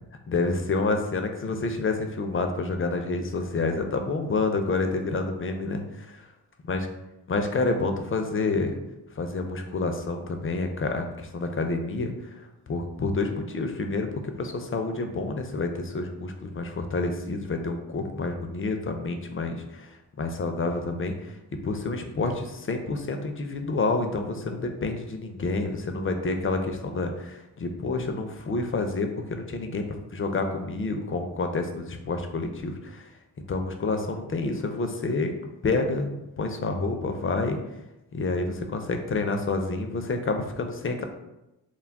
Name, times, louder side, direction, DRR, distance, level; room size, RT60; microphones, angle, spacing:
voice 1, 0.3-6.2 6.7-6.9 7.3-8.7 9.1-12.3 12.7-19.9 20.2-21.4 21.6-33.1 33.5-35.3 35.6-36.1 36.4-37.6 38.1-41.0, left 3 dB, 30° left, 5 dB, 0.4 m, -28 dB
2.2 x 2.1 x 3.4 m, 0.94 s
cardioid pair, 50°, 44 cm